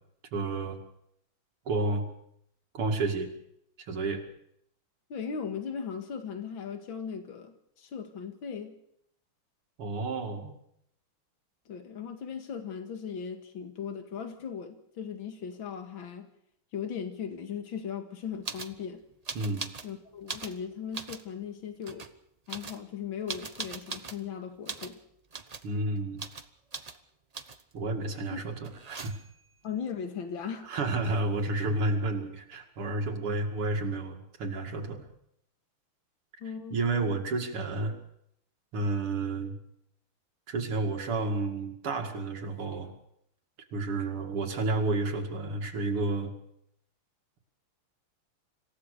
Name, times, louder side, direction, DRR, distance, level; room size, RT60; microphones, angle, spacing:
voice 1, 0.3-0.8 1.7-2.0 2.7-3.3 3.9-4.2 9.8-10.5 19.3-19.7 25.6-26.2 27.7-29.1 30.6-35.0 36.7-37.9 38.7-39.5 40.5-42.9 43.7-46.3, right 2 dB, 80° right, 3 dB, 3.2 m, -31 dB
voice 2, 5.1-8.8 11.7-16.3 16.7-19.0 19.8-22.1 22.5-25.0 28.3-28.4 29.6-30.7 36.4-36.8, left 7 dB, 65° left, 6 dB, 2.7 m, -38 dB
sound 1, 18.4-18.7 19.2-19.9 20.2-21.3 21.8-22.1 22.5-24.2 24.6-25.0 25.3-25.7 26.2-26.5 26.7-27.0 27.3-27.7 28.6-29.4 31.2-31.3 31.5-32.1, right 4 dB, 50° right, 0.4 m, -40 dB
26.5 x 16.0 x 6.8 m, 0.74 s
omnidirectional pair, 2.4 m